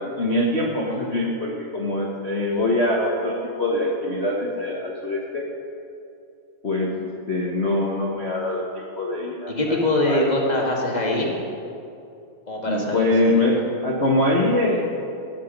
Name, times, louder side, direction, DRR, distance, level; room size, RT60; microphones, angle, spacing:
voice 1, 0.0-5.5 6.6-9.8 10.1-10.3 12.7-14.8, left 1 dB, 65° left, -2 dB, 0.6 m, -23 dB
voice 2, 9.5-11.3 12.5-13.4, left 1 dB, 20° left, -2 dB, 1.2 m, -23 dB
19.0 x 9.0 x 5.4 m, 2.6 s
omnidirectional pair, 3.5 m